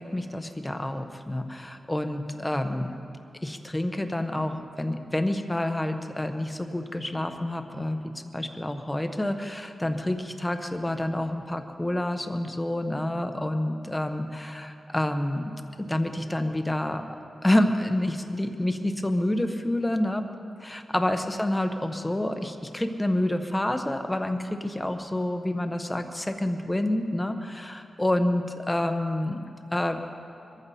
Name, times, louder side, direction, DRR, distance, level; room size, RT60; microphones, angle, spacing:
voice 1, 0.0-3.0 3.4-8.0 8.3-15.5 15.8-17.0 17.4-20.2 20.6-29.4 29.7-30.0, left 1 dB, 10° left, 6 dB, 0.8 m, -28 dB
23.5 x 14.5 x 4.2 m, 2.5 s
wide cardioid pair, 175°, 0 cm